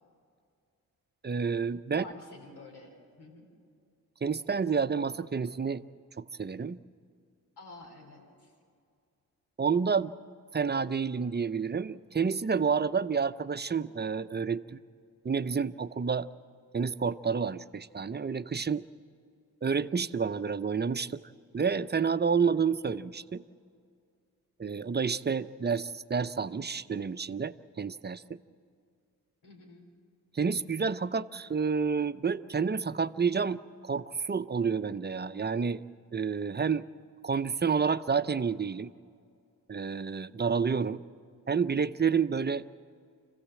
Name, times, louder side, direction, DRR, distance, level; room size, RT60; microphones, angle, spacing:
voice 1, 1.2-2.0 4.2-5.8 6.2-6.8 9.6-10.1 10.5-14.8 15.2-16.3 16.7-18.9 19.6-21.2 21.5-23.4 24.6-28.4 30.3-35.8 36.1-36.9 37.2-38.9 39.7-41.0 41.5-42.6, right 5 dB, 25° right, 14 dB, 0.6 m, -29 dB
voice 2, 1.9-3.5 7.6-8.5 29.4-29.9, left 2 dB, 70° left, 2 dB, 3.6 m, -49 dB
26.0 x 15.5 x 7.7 m, 2.3 s
supercardioid pair, 40°, 41 cm